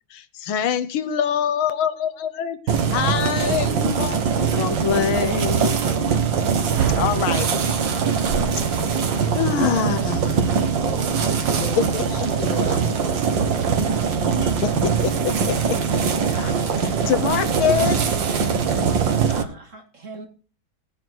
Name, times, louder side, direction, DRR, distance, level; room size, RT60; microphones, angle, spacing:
voice 1, 0.1-4.2 4.5-6.3 6.9-7.5 8.7-8.9 9.3-10.4 11.9-12.3 14.4-15.8 16.2-18.0, left 8 dB, 85° left, 1.7 m, -25 dB
sound 1, 2.7-19.4, right 6 dB, 70° right, 2.1 m, -22 dB
voice 2, 10.8-14.1, left 1 dB, 60° left, 3.8 m, -37 dB
voice 3, 18.2-20.3, right 4 dB, 40° right, 2.7 m, -40 dB
18.5 x 9.7 x 4.6 m
omnidirectional pair, 2.2 m